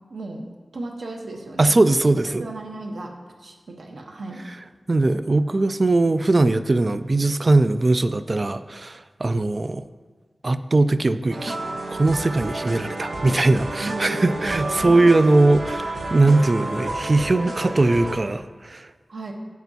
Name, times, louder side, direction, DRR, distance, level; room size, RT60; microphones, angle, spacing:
voice 1, 0.1-0.5 0.7-1.7 2.4-3.1 3.4-4.4 13.8-15.3 19.1-19.3, right 2 dB, 90° right, 2 dB, 1.0 m, -34 dB
voice 2, 1.6-2.4 4.9-9.8 10.4-11.6 11.9-18.9, right 2 dB, 40° right, 12 dB, 0.3 m, -20 dB
sound 1, 11.3-18.1, right 2 dB, 65° right, 1.0 m, -30 dB
11.5 x 8.1 x 2.7 m, 1.4 s
wide cardioid pair, 105°, 0 cm